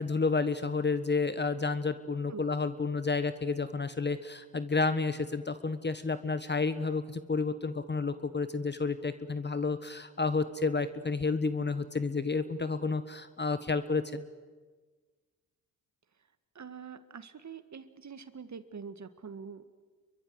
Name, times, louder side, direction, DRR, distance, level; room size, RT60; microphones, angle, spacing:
voice 1, 0.0-14.2, left 4 dB, 20° left, 13 dB, 1.3 m, -30 dB
voice 2, 16.6-19.7, right 6 dB, 35° right, 11 dB, 1.9 m, -45 dB
29.0 x 23.5 x 8.0 m, 1.4 s
figure-of-eight pair, 45°, 50 cm